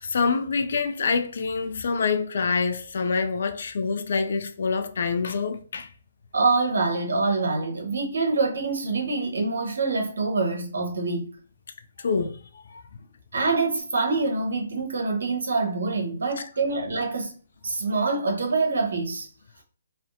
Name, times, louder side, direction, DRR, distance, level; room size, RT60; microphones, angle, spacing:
voice 1, 0.0-5.9 12.0-12.6, left 4 dB, 60° left, 0.3 m, -26 dB
voice 2, 6.3-11.3 13.3-17.3 17.6-19.3, right 3 dB, 70° right, 0.7 m, -25 dB
2.6 x 2.0 x 2.5 m
figure-of-eight pair, 135°, 0 cm